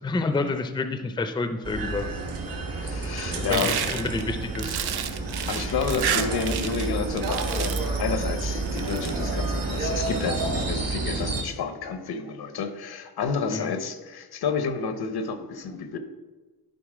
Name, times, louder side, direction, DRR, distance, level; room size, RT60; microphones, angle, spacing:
voice 1, 0.0-2.1 3.3-4.8 13.5-13.7, left 3 dB, 15° left, 9 dB, 0.4 m, -29 dB
sound 1, 1.6-11.4, right 3 dB, 65° right, 1.4 m, -30 dB
voice 2, 2.8-3.8 5.5-16.0, left 5 dB, 80° left, 9 dB, 0.8 m, -30 dB
sound 2, 3.5-6.9 7.2-8.0 8.7-9.1, right 8 dB, 90° right, 0.7 m, -30 dB
11.0 x 4.1 x 4.9 m, 1.2 s
wide cardioid pair, 160°, 37 cm